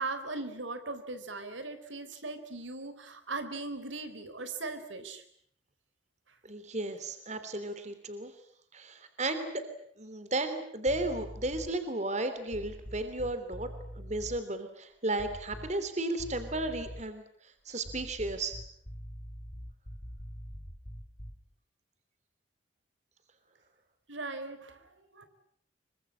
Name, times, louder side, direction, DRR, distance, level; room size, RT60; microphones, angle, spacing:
voice 1, 0.0-5.2 24.1-25.3, right 3 dB, 80° right, 10 dB, 3.9 m, -39 dB
voice 2, 6.4-8.3 8.7-9.6 10.0-13.7 14.0-17.2 17.6-18.6, right 2 dB, 35° right, 9 dB, 3.3 m, -34 dB
sound 1, 10.9-11.8 12.5-14.4 15.2-15.9 16.2-17.2 17.8-21.5, equal, 25° left, 1.8 m, -44 dB
26.5 x 24.0 x 8.7 m, 0.65 s
head